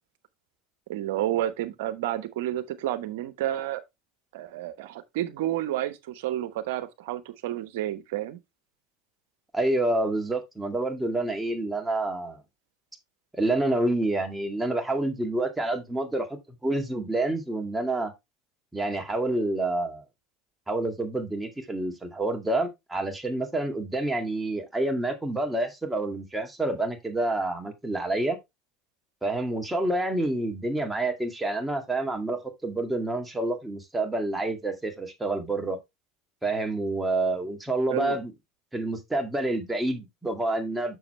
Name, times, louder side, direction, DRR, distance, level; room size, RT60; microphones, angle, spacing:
voice 1, 0.9-3.8 4.3-8.4 37.9-38.2, right 13 dB, 70° right, 1.0 m, -30 dB
voice 2, 9.5-12.4 13.3-18.1 18.7-20.0 20.7-28.4 29.2-35.8 36.4-38.3 38.7-41.0, right 2 dB, 10° right, 2.0 m, -28 dB
6.9 x 6.3 x 3.1 m
hypercardioid pair, 80°, 0 cm